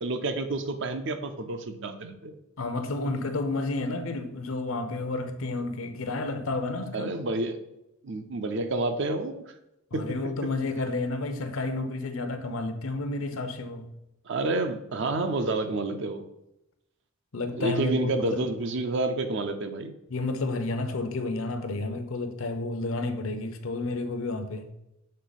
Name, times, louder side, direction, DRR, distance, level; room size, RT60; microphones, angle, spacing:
voice 1, 0.0-2.3 6.9-7.6 8.0-9.5 9.9-10.5 14.3-16.2 17.5-19.9, right 2 dB, 60° right, 0.5 m, -29 dB
voice 2, 2.6-7.2 9.9-13.9 17.3-18.5 20.1-24.7, left 2 dB, 70° left, 0.6 m, -31 dB
6.5 x 3.6 x 4.0 m
head